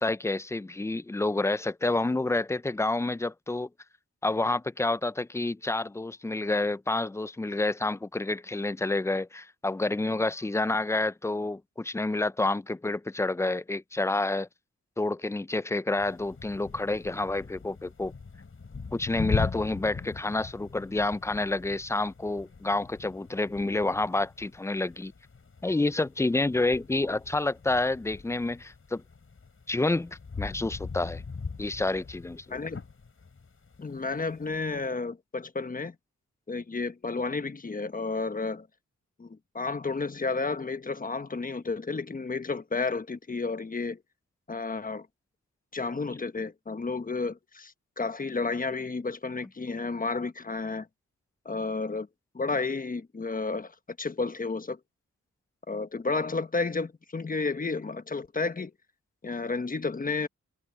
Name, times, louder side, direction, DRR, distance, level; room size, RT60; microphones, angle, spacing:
voice 1, 0.0-3.7 4.2-14.5 15.0-18.1 18.9-25.1 25.6-29.0 29.7-31.2 31.6-32.6, left 2 dB, 10° left, 0.4 m, -29 dB
sound 1, 16.0-34.8, left 4 dB, 45° left, 5.6 m, -40 dB
voice 2, 32.5-32.8 33.8-35.9 36.5-38.7 39.2-44.0 44.5-45.1 45.7-50.9 51.4-52.1 52.3-54.8 55.7-58.7 59.2-60.3, left 4 dB, 30° left, 1.2 m, -32 dB
wide cardioid pair, 95°, 31 cm